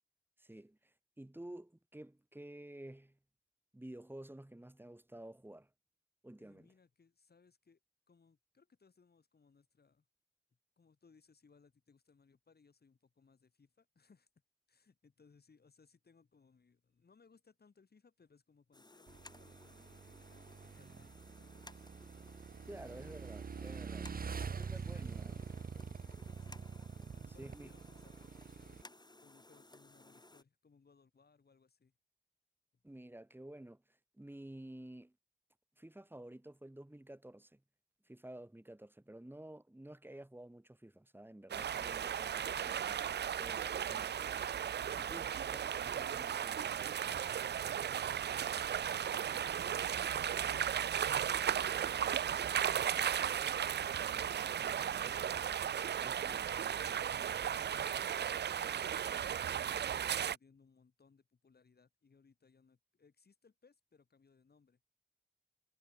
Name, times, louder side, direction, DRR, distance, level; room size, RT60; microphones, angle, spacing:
voice 1, 0.4-3.2 3.7-5.7 6.2-6.7 22.7-24.1 24.6-25.4 27.4-27.7 32.8-35.1 35.8-37.6 38.0-43.1 43.4-44.5 45.0-45.7 45.9-46.8 56.0-56.4, right 1 dB, 10° right, 1.5 m, -52 dB
voice 2, 6.4-7.8 8.1-10.0 10.8-14.3 14.7-21.9 23.5-23.7 24.0-26.7 27.1-28.8 29.2-31.9 45.1-45.9 47.1-54.6 56.1-56.4 56.8-64.8, left 5 dB, 70° left, 4.3 m, -67 dB
sound 1, 18.7-30.4, left 2 dB, 25° left, 5.2 m, -59 dB
Motorcycle / Engine, 19.1-28.8, right 6 dB, 60° right, 0.8 m, -46 dB
sound 2, 41.5-60.4, right 9 dB, 85° right, 0.5 m, -35 dB
cardioid pair, 50°, 17 cm